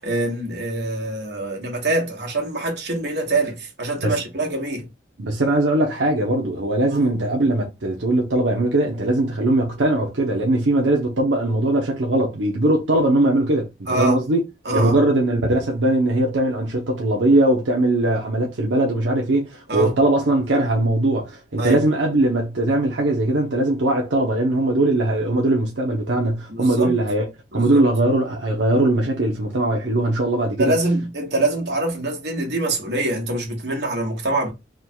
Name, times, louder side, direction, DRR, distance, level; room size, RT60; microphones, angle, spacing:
voice 1, 0.0-4.8 6.9-7.0 13.9-14.2 14.6-15.0 19.7-19.9 21.6-21.8 26.5-27.0 27.5-27.8 30.6-34.5, right 2 dB, 65° right, 1.4 m, -24 dB
voice 2, 5.2-14.4 14.7-27.2 27.5-30.7, right 1 dB, 90° right, 0.8 m, -20 dB
3.6 x 2.3 x 4.4 m
head